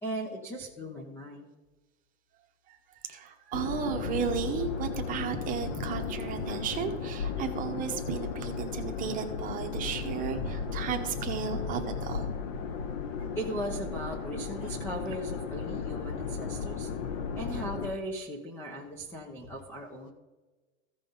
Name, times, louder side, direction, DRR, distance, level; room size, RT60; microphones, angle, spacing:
voice 1, 0.0-1.5 13.3-16.9 17.4-20.1, right 1 dB, 5° left, 1 dB, 0.5 m, -38 dB
voice 2, 2.7-12.3, right 7 dB, 20° right, 4 dB, 0.9 m, -34 dB
sound 1, 3.5-17.9, left 6 dB, 45° left, 0.9 m, -35 dB
15.0 x 5.3 x 3.9 m, 1.2 s
supercardioid pair, 150°, 40 cm